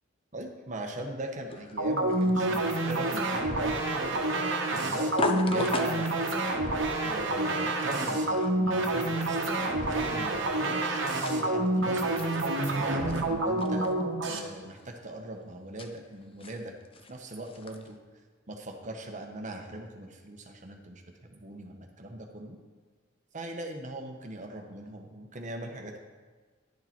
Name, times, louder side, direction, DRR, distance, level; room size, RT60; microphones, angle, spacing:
voice 1, 0.3-4.2 4.7-6.2 7.0-9.4 9.7-12.2 12.7-13.9 14.3-16.7 17.1-18.0 18.5-22.6 23.3-26.0, right 1 dB, 40° right, 3 dB, 1.0 m, -40 dB
sound 1, 1.5-18.0, left 3 dB, 30° left, 0.5 m, -40 dB
sound 2, 1.8-14.4, right 2 dB, 75° right, 1.1 m, -28 dB
10.5 x 6.6 x 4.4 m, 1.4 s
head